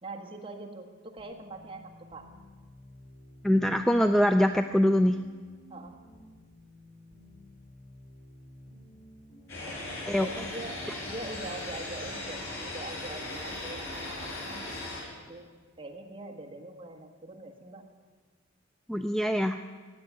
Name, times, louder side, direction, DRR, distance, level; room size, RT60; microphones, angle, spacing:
voice 1, 0.0-2.3 5.7-6.0 9.7-9.8 10.2-14.7 15.3-15.5 15.8-17.8, right 2 dB, 25° right, 1 dB, 1.6 m, -43 dB
sound 1, 1.2-11.2, equal, 50° left, 4.1 m, -53 dB
voice 2, 3.4-5.2 10.1-10.3 18.9-19.6, equal, ahead, 7 dB, 0.3 m, -23 dB
sound 2, 9.5-15.0, left 2 dB, 80° left, 5.8 m, -38 dB
15.5 x 8.8 x 9.5 m, 1.5 s
head